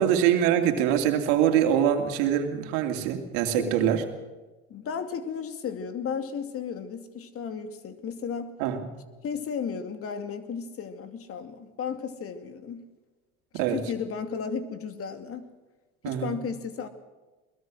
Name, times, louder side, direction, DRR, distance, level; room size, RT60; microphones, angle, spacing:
voice 1, 0.0-4.0 8.6-8.9 13.5-13.8 16.0-16.3, right 10 dB, 75° right, 6 dB, 2.8 m, -24 dB
voice 2, 4.7-8.5 9.2-12.9 13.5-15.5 16.0-16.9, left 6 dB, 45° left, 9 dB, 2.6 m, -34 dB
22.0 x 20.5 x 6.4 m, 1.2 s
supercardioid pair, 85°, 31 cm